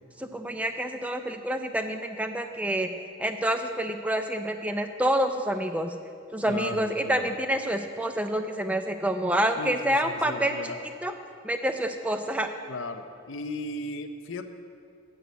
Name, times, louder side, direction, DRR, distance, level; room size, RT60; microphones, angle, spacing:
voice 1, 0.2-2.9 3.2-5.9 6.3-10.7 11.0-11.1 11.4-12.5, right 1 dB, 5° right, 7 dB, 0.4 m, -27 dB
voice 2, 6.5-7.4 9.6-10.8 12.7-14.5, left 2 dB, 70° left, 7 dB, 0.5 m, -36 dB
7.7 x 6.4 x 8.0 m, 2.4 s
head